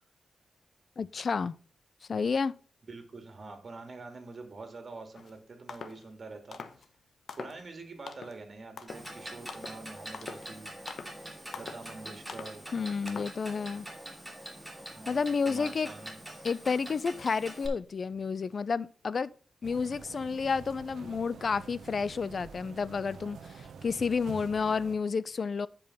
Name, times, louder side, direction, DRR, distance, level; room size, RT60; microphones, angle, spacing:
voice 1, 1.0-1.6 2.1-2.5 12.7-13.9 15.1-15.9 16.4-19.3 19.6-25.7, left 5 dB, 55° left, 0.4 m, -30 dB
voice 2, 2.9-6.9 7.3-10.7 11.6-12.6 14.6-16.2, right 3 dB, 50° right, 2.3 m, -46 dB
sound 1, 5.1-5.3 5.7-6.0 6.5-6.9 7.3-7.7 8.1-8.4 8.8-9.1 9.5-9.8 10.1-10.5 10.9-11.2 11.5-11.9 12.3-12.6 13.1-13.4, left 5 dB, 70° left, 0.9 m, -43 dB
Clock, 8.9-17.7, right 1 dB, 5° right, 2.7 m, -44 dB
sound 2, 19.6-25.0, right 6 dB, 90° right, 0.7 m, -47 dB
8.9 x 5.3 x 5.5 m
cardioid pair, 85°, 0 cm